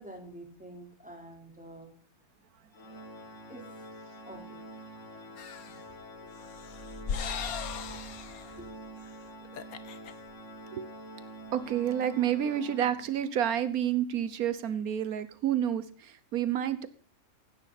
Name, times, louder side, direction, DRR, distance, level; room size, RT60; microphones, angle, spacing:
voice 1, 0.0-1.9 3.5-3.6 4.2-4.6 8.6-8.7, right 1 dB, 5° right, 1 dB, 4.2 m, -47 dB
Organ, 2.7-13.4, right 1 dB, 60° left, 2.0 m, -47 dB
sound 1, 5.4-5.8 6.4-8.6 9.0-9.1 9.4-10.1, left 7 dB, 85° left, 1.5 m, -38 dB
sound 2, 6.5-9.1, left 1 dB, 35° left, 2.5 m, -45 dB
voice 2, 11.5-16.9, right 10 dB, 90° right, 14 dB, 1.4 m, -29 dB
16.5 x 12.0 x 4.2 m, 0.41 s
omnidirectional pair, 1.5 m